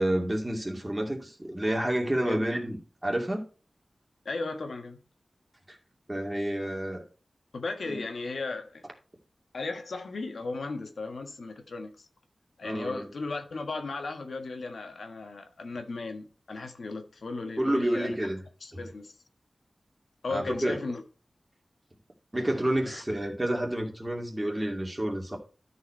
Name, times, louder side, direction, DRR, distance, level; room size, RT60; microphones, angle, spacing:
voice 1, 0.0-3.4 5.7-5.8 6.1-7.0 7.9-8.0 12.6-13.1 17.6-18.4 18.7-18.8 20.3-20.8 22.3-25.4, right 1 dB, 20° right, 2.4 m, -29 dB
voice 2, 4.2-5.0 7.5-8.8 9.5-12.1 12.6-18.2 18.6-19.1 20.2-21.0 22.9-23.0, left 3 dB, 85° left, 1.3 m, -36 dB
12.5 x 4.7 x 4.4 m
wide cardioid pair, 95°, 0 cm